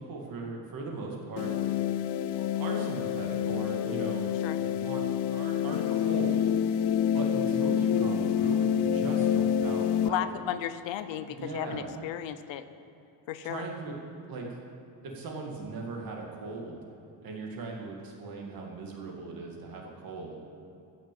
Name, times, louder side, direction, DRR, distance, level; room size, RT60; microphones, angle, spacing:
voice 1, 0.0-1.5 2.3-4.4 4.7-6.4 7.1-10.2 11.3-11.9 13.4-13.9 14.3-14.6 15.0-16.8 17.2-20.4, right 3 dB, 50° right, -1 dB, 2.1 m, -38 dB
sound 1, 1.4-10.1, left 9 dB, 65° left, 0.5 m, -27 dB
voice 2, 10.0-12.6 13.3-13.6, left 11 dB, 90° left, 12 dB, 0.8 m, -34 dB
15.0 x 6.5 x 7.5 m, 2.7 s
cardioid pair, 175°, 43 cm